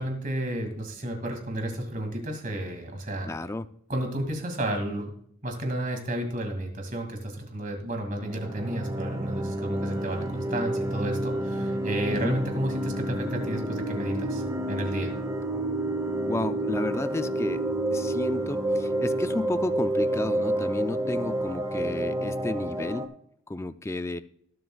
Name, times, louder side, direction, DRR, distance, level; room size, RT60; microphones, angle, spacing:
voice 1, 0.0-3.3 3.9-5.1 5.4-15.1, right 1 dB, 40° right, 4 dB, 2.3 m, -32 dB
voice 2, 3.3-3.7 12.1-12.4 16.2-17.6 17.9-23.1 23.5-24.2, left 2 dB, 15° left, 11 dB, 0.3 m, -32 dB
sound 1, 8.1-23.1, right 1 dB, 15° right, 0.9 m, -29 dB
19.0 x 7.7 x 2.3 m, 0.66 s
head